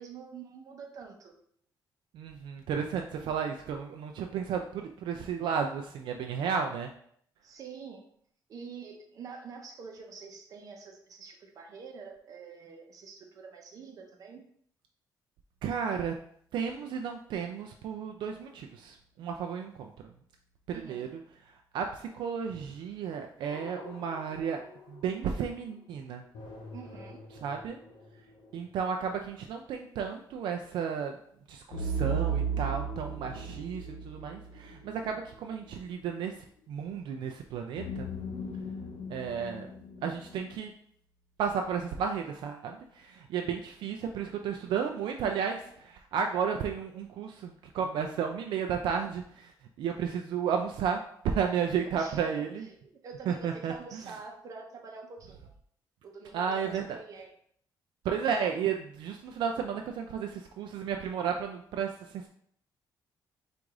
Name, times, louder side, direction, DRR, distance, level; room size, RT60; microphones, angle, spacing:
voice 1, 0.0-1.3 7.4-8.0 8.5-14.4 20.7-21.1 26.7-27.2 51.9-55.5 56.0-57.3, right 5 dB, 45° right, 2 dB, 0.7 m, -46 dB
voice 2, 2.1-6.9 15.6-16.1 16.5-19.9 20.7-21.1 21.7-24.6 24.9-26.2 27.4-27.8 28.5-31.2 31.5-38.1 39.1-39.7 40.0-40.7 41.4-52.7 53.3-54.1 56.3-57.0 58.0-62.3, right 7 dB, 80° right, 3 dB, 0.4 m, -33 dB
sound 1, 23.5-25.3 26.3-28.5 31.7-35.4 37.8-40.6, right 4 dB, 75° left, 0.8 m, -37 dB
4.7 x 2.5 x 3.7 m, 0.64 s
cardioid pair, 160°, 8 cm